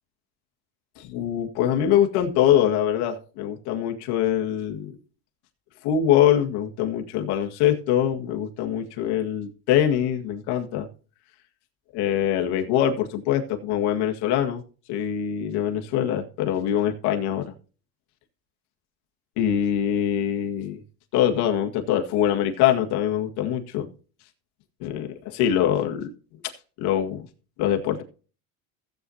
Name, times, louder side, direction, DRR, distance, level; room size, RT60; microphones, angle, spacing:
voice 1, 1.0-5.0 5.8-10.9 11.9-14.6 14.9-17.5 19.4-20.8 21.1-23.9 24.8-26.1 26.4-26.5 26.8-27.2 27.6-28.0, left 10 dB, 65° left, 1.8 m, -23 dB
16.0 x 7.9 x 2.8 m
supercardioid pair, 110°, 43 cm